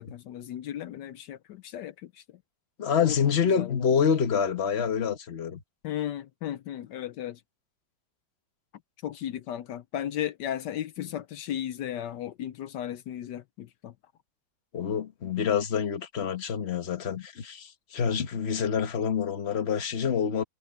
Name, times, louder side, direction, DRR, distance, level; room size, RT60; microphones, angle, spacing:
voice 1, 0.0-2.2 3.0-3.2 3.5-3.9 5.8-7.4 9.0-13.9, left 11 dB, 70° left, 1.1 m, -35 dB
voice 2, 2.8-5.6 14.7-20.4, left 7 dB, 35° left, 1.2 m, -27 dB
omnidirectional pair, 2.2 m